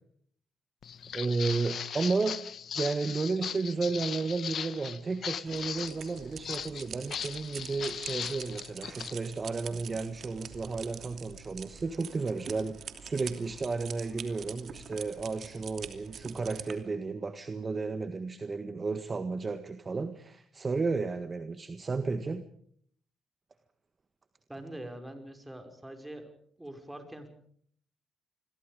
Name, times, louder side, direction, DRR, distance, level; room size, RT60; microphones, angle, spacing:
Walk footsteps, 0.8-9.1, left 8 dB, 60° left, 1.2 m, -38 dB
voice 1, 1.1-2.4 2.7-22.4, right 4 dB, 30° right, 9 dB, 1.6 m, -33 dB
sound 1, 5.5-16.7, right 7 dB, 60° right, 2.9 m, -45 dB
voice 2, 24.5-26.3 26.6-27.3, right 1 dB, 10° right, 6 dB, 5.4 m, -44 dB
28.0 x 22.5 x 5.1 m, 0.62 s
cardioid pair, 90°, 0 cm